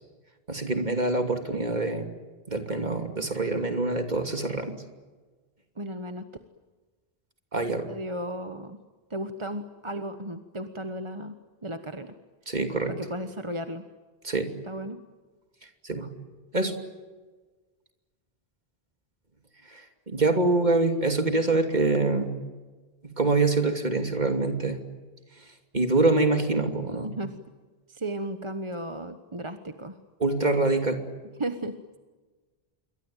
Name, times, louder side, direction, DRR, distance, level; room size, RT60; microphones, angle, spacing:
voice 1, 0.5-2.1 2.5-4.7 7.5-7.9 12.5-12.9 14.2-14.5 15.8-16.1 16.5-16.7 19.7-22.4 23.0-24.8 25.7-27.1 30.2-31.0, right 2 dB, 45° right, 6 dB, 3.1 m, -25 dB
voice 2, 5.8-6.3 7.9-8.8 9.1-11.3 11.6-12.1 12.9-13.8 14.6-15.0 27.0-27.4 27.9-29.9 31.4-31.8, right 1 dB, 30° right, 8 dB, 1.3 m, -34 dB
27.5 x 23.5 x 9.1 m, 1.3 s
omnidirectional pair, 1.1 m